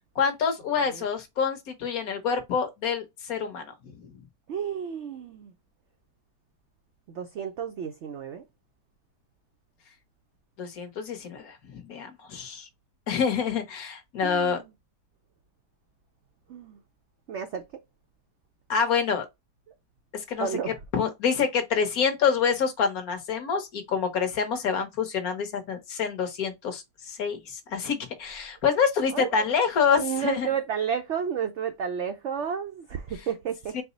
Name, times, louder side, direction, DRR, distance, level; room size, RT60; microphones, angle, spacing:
voice 1, 0.2-3.7 10.6-12.7 13.1-14.6 18.7-19.3 20.1-20.5 20.9-30.5 33.7-33.8, left 6 dB, 60° left, 1.4 m, -27 dB
voice 2, 4.5-5.5 7.1-8.4 14.2-14.6 16.5-16.8 17.3-17.6 20.4-20.7 29.1-29.5 30.0-33.8, right 7 dB, 85° right, 0.6 m, -31 dB
4.6 x 2.0 x 3.8 m
omnidirectional pair, 1.8 m